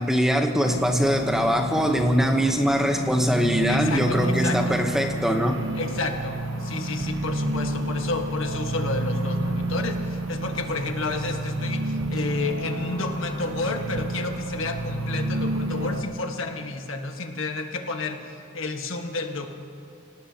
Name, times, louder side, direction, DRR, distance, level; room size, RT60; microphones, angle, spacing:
voice 1, 0.0-5.6, equal, ahead, 4 dB, 0.9 m, -22 dB
sound 1, 0.6-16.0, right 1 dB, 90° right, 1.0 m, -29 dB
voice 2, 3.7-4.8 5.7-18.2 18.5-19.5, left 3 dB, 75° left, 4 dB, 1.4 m, -31 dB
26.5 x 17.5 x 2.8 m, 2.8 s
head